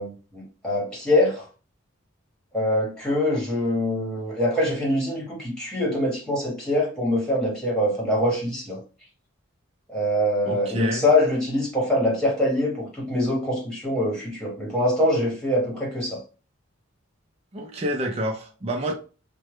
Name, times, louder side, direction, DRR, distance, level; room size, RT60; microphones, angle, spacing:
voice 1, 0.0-1.4 2.5-8.8 9.9-16.2, left 1 dB, 5° left, 1.3 m, -24 dB
voice 2, 10.4-11.0 17.5-18.9, right 1 dB, 30° right, 0.5 m, -28 dB
3.3 x 2.2 x 3.1 m
head